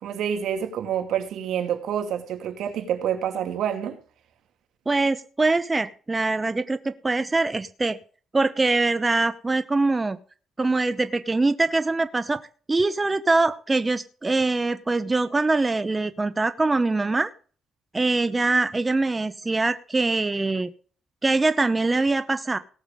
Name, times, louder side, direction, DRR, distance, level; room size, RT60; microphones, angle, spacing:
voice 1, 0.0-4.0, right 9 dB, 75° right, 2.4 m, -27 dB
voice 2, 4.9-8.0 8.3-10.2 10.6-12.4 12.7-17.3 17.9-20.7 21.2-22.6, right 3 dB, 20° right, 0.8 m, -23 dB
18.0 x 7.0 x 5.3 m
cardioid pair, 90°, 0 cm